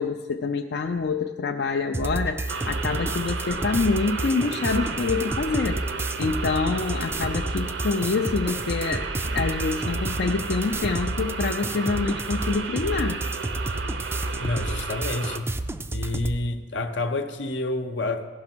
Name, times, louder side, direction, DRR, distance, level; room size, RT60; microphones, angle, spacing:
voice 1, 0.0-5.8 6.2-9.1 9.3-13.2, left 4 dB, 60° left, 4 dB, 0.4 m, -26 dB
sound 1, 1.9-16.4, right 2 dB, 15° right, 0.4 m, -31 dB
sound 2, 2.5-15.4, right 4 dB, 70° right, 0.8 m, -34 dB
voice 2, 14.4-15.5 15.9-18.3, left 2 dB, 80° left, 7 dB, 0.8 m, -28 dB
16.0 x 5.8 x 6.1 m, 1.3 s
head